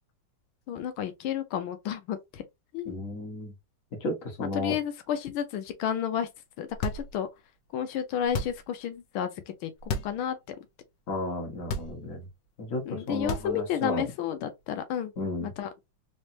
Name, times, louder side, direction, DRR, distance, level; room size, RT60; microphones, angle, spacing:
voice 1, 0.7-2.4 2.7-3.0 4.5-6.3 6.6-7.3 7.7-9.3 9.6-9.7 10.0-10.4 12.9-15.1 15.4-15.7, left 9 dB, 90° left, 1.6 m, -31 dB
voice 2, 2.8-3.5 4.0-4.8 11.1-12.2 12.6-14.1 15.2-15.5, left 1 dB, 40° left, 1.8 m, -33 dB
sound 1, 6.7-7.4 8.2-8.8 9.8-10.2 10.6-10.7 11.6-12.3 13.1-13.8, left 2 dB, 70° left, 1.4 m, -33 dB
4.1 x 3.3 x 2.8 m
omnidirectional pair, 2.2 m